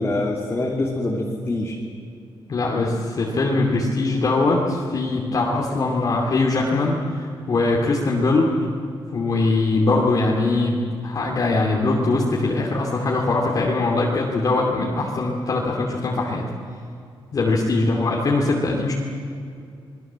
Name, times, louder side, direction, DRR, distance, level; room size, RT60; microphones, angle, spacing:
voice 1, 0.0-1.8 17.8-18.1, left 2 dB, 25° left, -3 dB, 2.9 m, -25 dB
voice 2, 2.5-8.6 9.1-16.5 17.3-18.9, left 2 dB, 40° left, -2 dB, 2.9 m, -21 dB
28.0 x 21.0 x 7.6 m, 2.4 s
wide cardioid pair, 170°, 9 cm